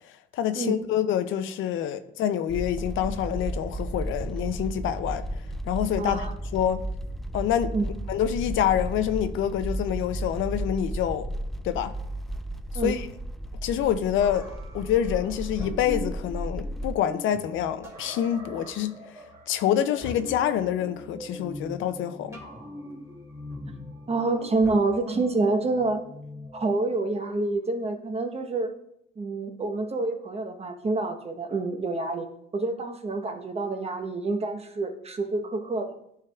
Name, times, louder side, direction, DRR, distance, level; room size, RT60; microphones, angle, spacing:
voice 1, 0.3-5.2 5.7-6.3 6.5-6.8 7.3-7.7 8.1-11.3 11.6-12.0 12.8-13.1 13.6-14.5 14.7-19.2 19.5-22.4, left 10 dB, 80° left, 0.4 m, -26 dB
sound 1, 2.5-17.0, right 1 dB, ahead, 0.3 m, -34 dB
voice 2, 6.0-6.3 7.7-7.9 12.7-12.9 24.1-26.0 26.5-28.7 29.2-32.3 32.5-35.9, right 3 dB, 30° right, 0.9 m, -27 dB
sound 2, 14.2-26.8, equal, 15° right, 2.5 m, -41 dB
10.5 x 4.5 x 2.3 m
cardioid pair, 90°, 20 cm